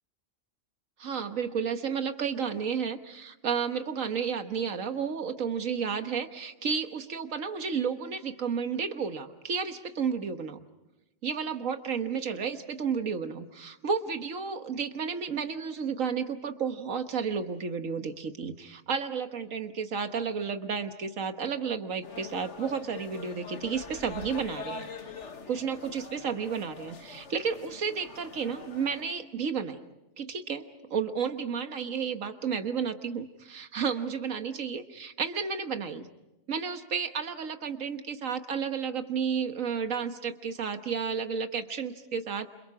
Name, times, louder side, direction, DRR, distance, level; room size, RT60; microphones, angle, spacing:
voice 1, 1.0-10.6 11.2-24.9 25.5-29.8 30.2-36.1 36.5-42.5, right 6 dB, 80° right, 8 dB, 1.7 m, -32 dB
sound 1, 22.0-29.0, left 5 dB, 60° left, 1.7 m, -44 dB
29.0 x 27.5 x 4.8 m, 0.95 s
omnidirectional pair, 1.4 m